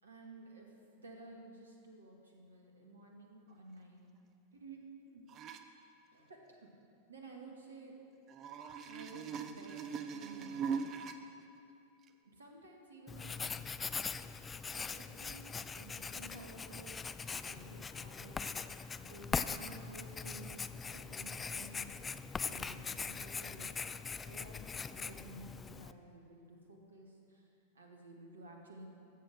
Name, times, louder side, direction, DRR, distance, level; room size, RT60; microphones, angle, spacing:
voice 1, 0.0-4.0 4.5-5.2 6.1-6.7 7.1-8.0 8.9-10.8 12.2-14.2 14.7-15.5 15.7-17.0 17.4-18.5 19.0-22.0 22.4-23.8 24.2-24.6 24.9-28.9, right 2 dB, 75° right, 1 dB, 1.9 m, -53 dB
sound 1, 5.3-5.6 8.3-11.2 12.0-12.1, right 6 dB, 30° right, 0.7 m, -40 dB
Writing, 13.1-25.9, left 5 dB, 15° left, 0.4 m, -41 dB
14.0 x 7.6 x 6.2 m, 2.5 s
figure-of-eight pair, 90°, 0 cm